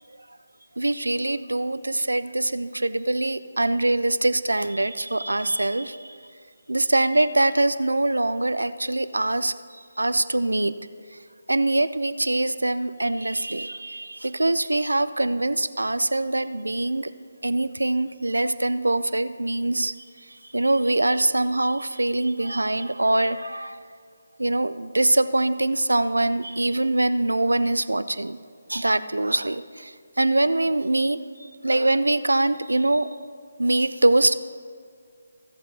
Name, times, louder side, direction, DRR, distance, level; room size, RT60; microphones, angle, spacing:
voice 1, 0.8-6.2 6.7-9.5 10.0-10.7 11.5-17.1 17.4-19.9 20.5-23.8 24.4-28.4 28.7-31.2 31.6-33.1 33.6-34.3, right 2 dB, 85° right, 14 dB, 0.4 m, -23 dB
16.0 x 7.5 x 2.7 m, 2.1 s
figure-of-eight pair, 155°, 0 cm